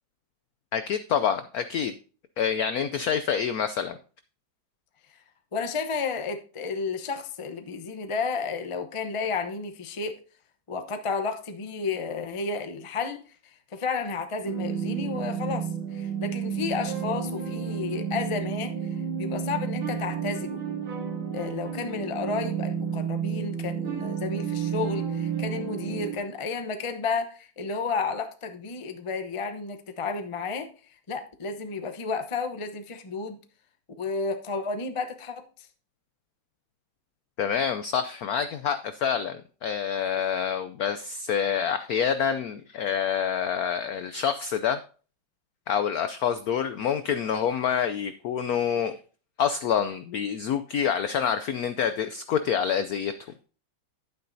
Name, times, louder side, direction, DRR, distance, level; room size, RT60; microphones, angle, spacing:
voice 1, 0.7-1.9 2.4-4.0 37.4-44.8 45.7-49.0 49.4-53.3, left 8 dB, 80° left, 11 dB, 0.8 m, -27 dB
voice 2, 5.5-10.1 10.7-13.2 13.7-18.7 19.2-20.6 21.3-30.7 31.1-33.4 34.0-35.7, left 4 dB, 55° left, 7 dB, 0.3 m, -32 dB
sound 1, 14.4-26.2, right 7 dB, 80° right, 2.5 m, -31 dB
11.0 x 9.3 x 2.7 m, 0.39 s
omnidirectional pair, 2.2 m